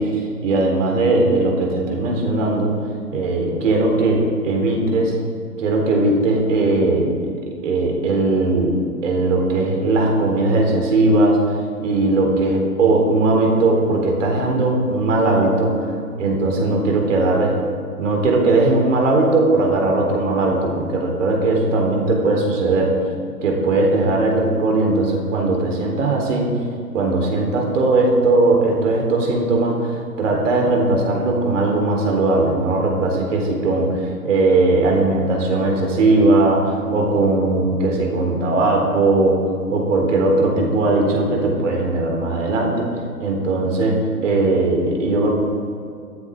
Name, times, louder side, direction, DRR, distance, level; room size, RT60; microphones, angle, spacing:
voice 1, 0.0-2.7 3.1-5.1 5.6-7.2 7.6-8.7 9.0-11.4 11.8-15.9 16.2-17.6 18.0-23.0 23.4-26.5 26.9-39.4 39.7-42.9 43.2-45.3, right 2 dB, 55° right, 0 dB, 3.9 m, -18 dB
24.5 x 9.8 x 3.7 m, 2.4 s
figure-of-eight pair, 125°, 46 cm